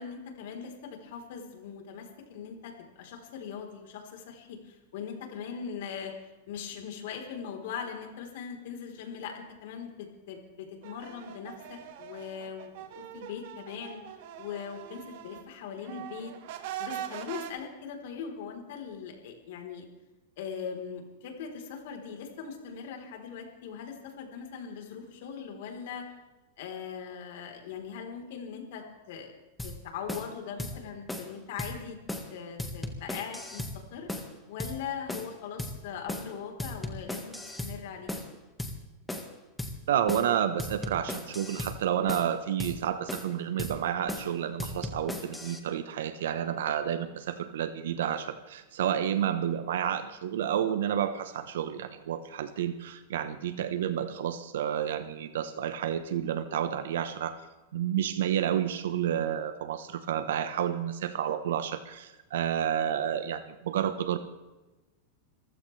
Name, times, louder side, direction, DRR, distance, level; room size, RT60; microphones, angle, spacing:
voice 1, 0.0-6.1 6.5-14.0 14.4-16.3 16.8-19.9 20.4-26.1 26.6-29.3 29.6-32.0 32.3-34.1 34.5-38.1, left 7 dB, 65° left, 3 dB, 4.0 m, -40 dB
sound 1, 10.8-15.5 15.8-17.5, right 11 dB, 60° right, 1.9 m, -42 dB
sound 2, 29.6-29.8 30.1-30.3 30.6-30.8 31.1-31.3 31.6-31.7 32.1-32.3 32.6-33.8 34.1-34.3 34.6-34.8 35.1-35.3 35.6-35.8 36.1-36.3 36.6-37.8 38.1-38.3 38.6-38.8 39.1-39.3 39.6-39.8 40.1-40.3 40.6-41.8 42.1-42.3 42.6-42.8 43.1-43.3 43.6-43.8 44.1-44.3 44.6-45.6, left 1 dB, 5° left, 1.7 m, -36 dB
voice 2, 39.9-57.4 57.7-64.2, right 9 dB, 80° right, 10 dB, 1.1 m, -30 dB
26.0 x 15.5 x 3.4 m, 1.1 s
supercardioid pair, 155°, 0 cm